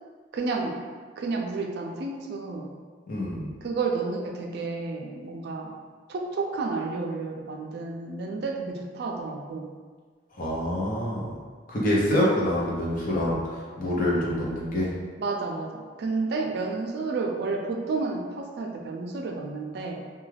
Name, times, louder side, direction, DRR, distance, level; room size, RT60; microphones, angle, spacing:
voice 1, 0.3-0.8 1.2-2.7 3.6-5.7 6.1-9.7 15.2-20.1, right 3 dB, 60° right, 1 dB, 0.3 m, -31 dB
voice 2, 3.1-3.5 10.4-11.3 11.7-13.4 13.8-14.9, left 1 dB, 50° left, -5 dB, 0.7 m, -26 dB
2.3 x 2.2 x 3.2 m, 1.5 s
head